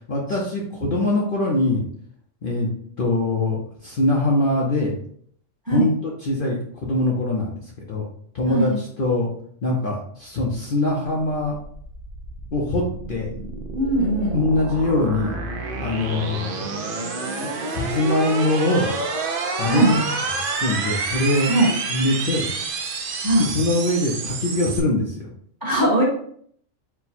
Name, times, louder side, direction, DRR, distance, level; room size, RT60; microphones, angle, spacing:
voice 1, 0.0-1.8 2.4-2.7 3.0-4.9 5.7-8.1 8.3-9.3 9.6-11.6 12.5-13.3 14.3-15.4 15.8-16.5 17.4-18.9 19.6-20.1 20.5-21.5 21.9-22.5 23.3-25.3, left 2 dB, 50° left, -3 dB, 0.8 m, -23 dB
sound 1, 11.0-24.8, right 3 dB, 55° right, 0.6 m, -29 dB
voice 2, 13.7-14.4 19.6-19.9 21.5-21.7 23.2-23.4 25.6-26.0, right 2 dB, 15° right, -4 dB, 1.1 m, -20 dB
4.3 x 2.2 x 4.2 m, 0.62 s
omnidirectional pair, 1.3 m